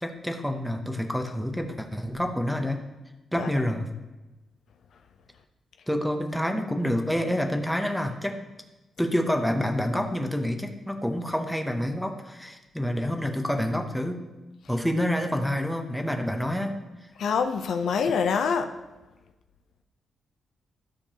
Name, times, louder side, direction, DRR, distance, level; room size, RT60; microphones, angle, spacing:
voice 1, 0.0-2.8 3.3-3.9 5.9-8.4 9.0-14.2 14.7-16.8, equal, ahead, 4 dB, 0.8 m, -28 dB
voice 2, 17.2-18.8, left 6 dB, 70° left, 7 dB, 0.5 m, -25 dB
12.5 x 6.6 x 2.9 m, 1.1 s
cardioid pair, 130°, 0 cm